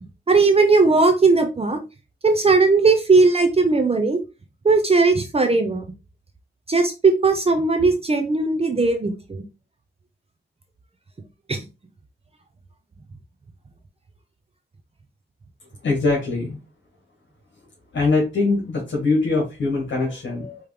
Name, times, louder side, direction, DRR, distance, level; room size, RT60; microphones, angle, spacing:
voice 1, 0.3-1.8 2.2-4.2 4.6-5.8 6.7-9.4 11.5-11.6, right 3 dB, 30° right, 6 dB, 0.6 m, -18 dB
voice 2, 15.8-16.6 17.9-20.6, left 3 dB, 70° left, -2 dB, 1.9 m, -22 dB
5.0 x 3.0 x 3.5 m, 0.27 s
wide cardioid pair, 155°, 20 cm